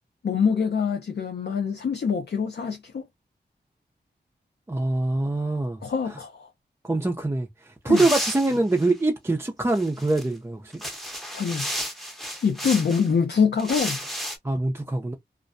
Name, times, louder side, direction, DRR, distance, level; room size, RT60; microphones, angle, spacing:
voice 1, 0.2-3.0 5.8-6.5 7.9-8.1 11.3-11.7 12.4-14.0, left 6 dB, 70° left, 0.5 m, -24 dB
voice 2, 4.7-5.8 6.8-10.6 14.4-15.1, right 2 dB, 15° right, 0.4 m, -24 dB
sound 1, 7.9-8.9 9.7-10.2 10.7-13.1 13.6-14.4, equal, ahead, 0.8 m, -32 dB
2.4 x 2.1 x 2.5 m
cardioid pair, 60°, 18 cm